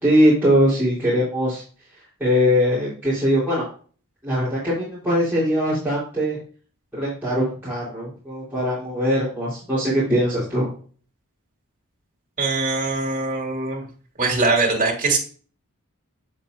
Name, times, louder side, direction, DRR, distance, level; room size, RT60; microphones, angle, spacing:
voice 1, 0.0-1.6 2.2-3.6 4.2-6.4 7.0-10.7, equal, 10° right, -10 dB, 3.7 m, -21 dB
voice 2, 12.4-13.8 14.2-15.2, right 3 dB, 35° right, -2 dB, 3.3 m, -22 dB
8.2 x 7.3 x 2.6 m, 0.40 s
head